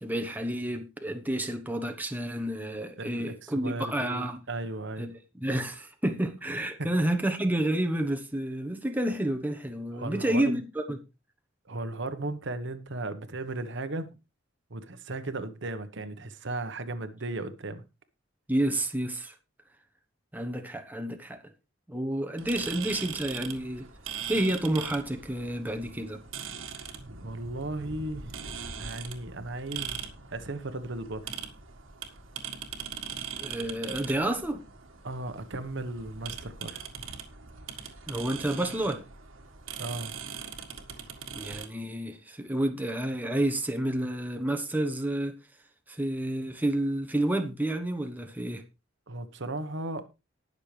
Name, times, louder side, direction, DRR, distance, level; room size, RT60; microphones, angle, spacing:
voice 1, 0.0-4.4 5.0-5.1 5.4-11.0 18.5-19.3 20.3-21.4 21.9-23.9 24.3-26.2 33.4-34.6 38.1-39.0 41.3-45.3 45.9-48.6, right 1 dB, 10° right, 1.1 m, -30 dB
voice 2, 3.0-5.1 9.9-10.6 11.6-14.2 14.7-17.8 27.2-31.3 35.0-36.8 39.8-40.2 49.1-50.1, right 2 dB, 65° right, 1.2 m, -36 dB
sound 1, 22.4-41.7, right 7 dB, 85° right, 1.8 m, -41 dB
19.5 x 6.7 x 3.3 m
head